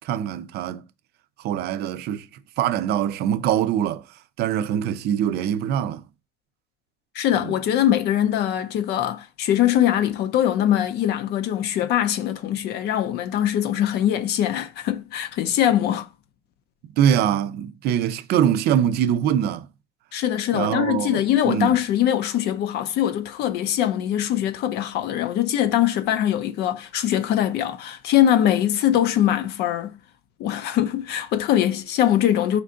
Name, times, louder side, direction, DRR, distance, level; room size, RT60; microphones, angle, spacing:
voice 1, 0.0-0.8 1.4-2.3 2.6-4.0 4.4-6.0 7.3-7.5 16.8-19.7 20.5-21.8, right 10 dB, 75° right, 0.4 m, -23 dB
voice 2, 7.1-16.1 20.1-30.0 30.4-32.6, left 11 dB, 75° left, 0.5 m, -22 dB
4.4 x 2.5 x 3.7 m
cardioid pair, 110°, 17 cm